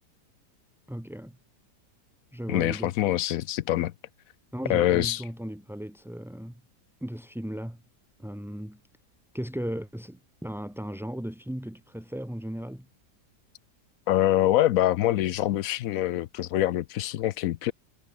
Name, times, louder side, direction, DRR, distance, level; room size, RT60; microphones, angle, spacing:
voice 1, 0.9-1.4 2.3-2.9 4.5-6.6 7.0-7.8 8.2-8.8 9.3-12.9, equal, ahead, 0.8 m, -36 dB
voice 2, 2.5-3.9 4.7-5.2 14.1-17.7, left 13 dB, 70° left, 0.9 m, -25 dB
omnidirectional pair, 1.8 m